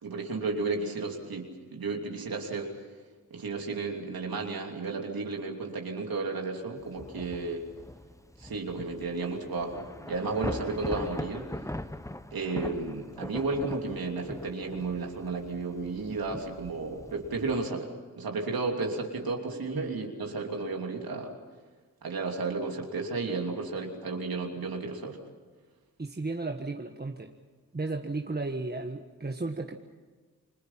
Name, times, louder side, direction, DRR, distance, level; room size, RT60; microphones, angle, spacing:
voice 1, 0.0-2.7 3.3-7.6 8.4-11.5 12.3-17.9 18.2-21.3 22.0-25.2, right 3 dB, 85° right, 1 dB, 3.1 m, -33 dB
Thunder / Rain, 6.8-17.7, left 1 dB, 10° left, 1.1 m, -41 dB
voice 2, 19.5-20.0 26.0-27.3 27.7-29.7, right 3 dB, 25° right, 3 dB, 1.5 m, -34 dB
29.5 x 22.0 x 5.8 m, 1.4 s
cardioid pair, 45°, 35 cm